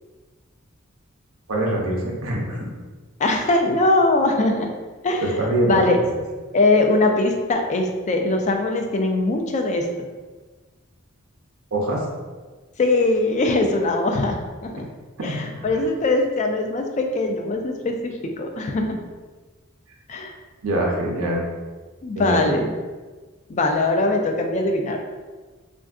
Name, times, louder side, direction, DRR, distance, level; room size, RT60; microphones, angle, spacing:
voice 1, 1.5-2.7 5.2-6.0 11.7-12.1 15.2-15.7 20.6-21.5 22.2-22.5, right 1 dB, 70° right, -1 dB, 0.5 m, -24 dB
voice 2, 3.2-4.7 5.0-5.2 5.7-6.0 6.5-9.9 12.8-14.8 15.2-19.0 20.1-20.3 22.0-22.7 23.5-25.0, left 2 dB, 35° left, 4 dB, 0.3 m, -21 dB
3.4 x 2.5 x 2.3 m, 1.3 s
head